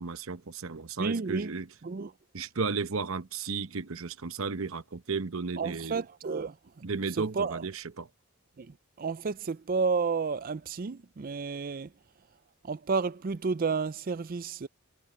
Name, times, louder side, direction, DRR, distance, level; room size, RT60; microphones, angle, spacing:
voice 1, 0.0-1.7 2.3-6.0 6.8-8.1, right 4 dB, 65° right, 0.9 m, -34 dB
voice 2, 1.0-1.5 1.8-2.1 5.6-6.6 7.4-7.6 8.6-11.9 12.6-14.7, right 4 dB, 40° right, 0.4 m, -31 dB
head